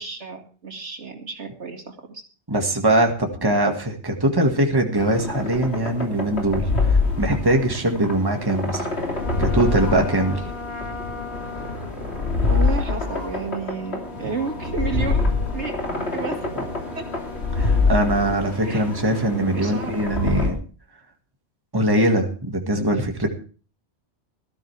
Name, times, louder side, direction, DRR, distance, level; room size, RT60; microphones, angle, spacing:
voice 1, 0.0-2.2 12.4-15.7 16.1-16.5 16.9-17.0 18.6-18.9 19.5-20.0, right 5 dB, 75° right, 3 dB, 2.5 m, -32 dB
voice 2, 2.5-8.9 9.4-10.4 16.6-16.7 17.6-20.6 21.7-23.3, right 1 dB, 20° right, 3 dB, 1.8 m, -22 dB
sound 1, 5.0-20.5, left 3 dB, 65° left, 3.3 m, -25 dB
Trumpet, 9.1-18.4, left 4 dB, 25° left, 1.1 m, -39 dB
18.5 x 13.0 x 3.4 m, 0.38 s
omnidirectional pair, 1.2 m